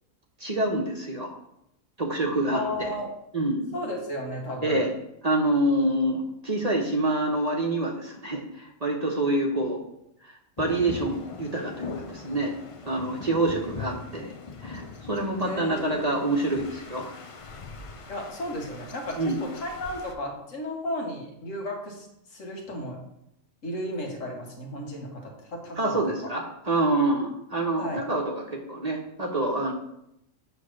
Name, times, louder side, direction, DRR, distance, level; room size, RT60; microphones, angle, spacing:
voice 1, 0.4-1.3 2.0-2.9 3.3-3.7 4.6-4.9 5.2-9.8 10.2-12.5 12.9-14.3 14.6-17.1 19.2-19.4 25.8-29.7, right 2 dB, 35° right, 0 dB, 1.0 m, -27 dB
voice 2, 2.5-3.1 3.7-4.9 15.4-16.2 18.1-23.0 23.6-26.0 27.8-28.0, left 1 dB, 75° left, 0 dB, 1.8 m, -34 dB
sound 1, 10.6-20.1, left 4 dB, 35° left, 0.5 m, -41 dB
7.8 x 3.3 x 6.3 m, 0.80 s
omnidirectional pair, 1.3 m